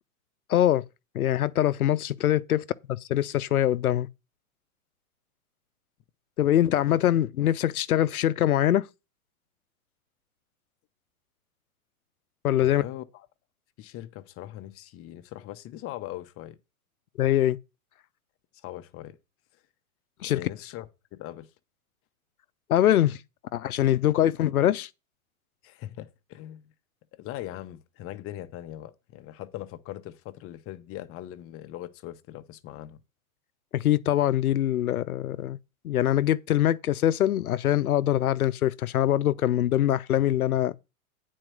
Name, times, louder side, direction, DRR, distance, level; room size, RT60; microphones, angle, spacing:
voice 1, 0.5-0.8 1.1-2.6 3.1-4.1 6.4-8.9 12.4-12.8 17.2-17.6 20.2-20.4 22.7-23.2 23.5-24.9 33.7-35.6 35.8-40.7, left 12 dB, 90° left, 0.8 m, -23 dB
voice 2, 12.6-13.3 13.8-16.6 18.5-19.2 20.2-21.5 25.6-26.7 27.1-33.0, left 14 dB, 30° left, 1.0 m, -41 dB
9.0 x 4.5 x 6.2 m
hypercardioid pair, 120°, 42 cm